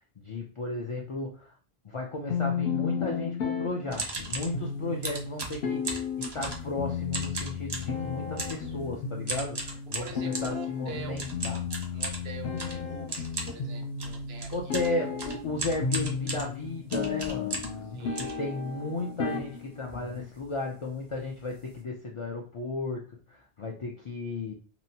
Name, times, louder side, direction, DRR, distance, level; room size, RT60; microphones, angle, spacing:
voice 1, 0.2-1.6 1.8-11.6 14.5-17.6 18.0-24.5, left 2 dB, 50° left, -1 dB, 0.4 m, -34 dB
sound 1, 2.3-20.3, left 6 dB, 70° left, 0.8 m, -34 dB
sound 2, 3.9-4.6 5.0-6.8 7.1-8.0 8.4-8.7 9.3-10.6 11.2-17.8 18.2-19.0 19.5-19.6 19.8-20.1 20.3-20.5 21.1-21.2 21.5-21.7, right 2 dB, 35° right, 0.4 m, -36 dB
voice 2, 9.7-14.9 17.9-18.4, right 5 dB, 75° right, 4 dB, 0.8 m, -45 dB
2.8 x 2.1 x 2.7 m, 0.40 s
omnidirectional pair, 1.1 m